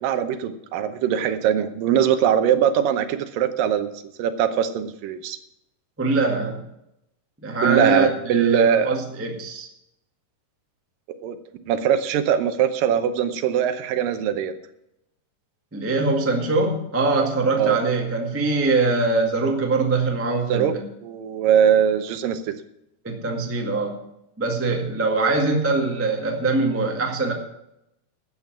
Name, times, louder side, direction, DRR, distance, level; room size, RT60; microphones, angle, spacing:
voice 1, 0.0-3.9 4.2-5.4 7.6-9.0 11.2-11.4 11.7-14.5 17.6-17.8 20.5-20.7 21.0-22.6, right 9 dB, 85° right, 10 dB, 2.6 m, -21 dB
voice 2, 6.0-6.6 7.4-9.7 15.7-20.8 23.0-24.0 24.4-27.3, right 3 dB, 10° right, 2 dB, 0.6 m, -23 dB
12.5 x 8.3 x 6.0 m, 0.83 s
omnidirectional pair, 3.9 m